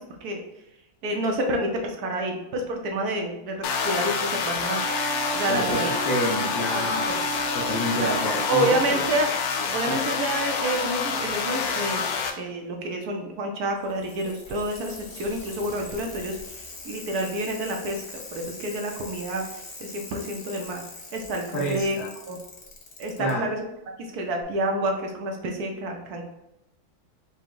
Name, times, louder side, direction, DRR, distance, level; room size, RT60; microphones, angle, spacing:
voice 1, 1.0-4.8 5.3-6.0 7.1-7.2 8.0-8.2 8.5-12.0 12.4-18.0 18.3-20.8 21.1-22.0 22.3-22.4 23.0-23.6 24.0-26.2, right 1 dB, 70° right, 2 dB, 0.9 m, -28 dB
sound 1, 3.6-12.3, left 5 dB, 90° left, 0.8 m, -27 dB
Wind instrument woodwind instrument, 4.7-8.9, right 3 dB, 90° right, 1.5 m, -33 dB
voice 2, 5.5-7.1 7.5-9.0 9.9-10.0 21.5-22.1 23.2-23.5, equal, 70° left, -2 dB, 1.4 m, -29 dB
Bicycle, 13.7-23.3 24.4-24.5, left 3 dB, 50° left, 0.7 m, -42 dB
5.1 x 2.1 x 4.5 m, 0.86 s
omnidirectional pair, 2.2 m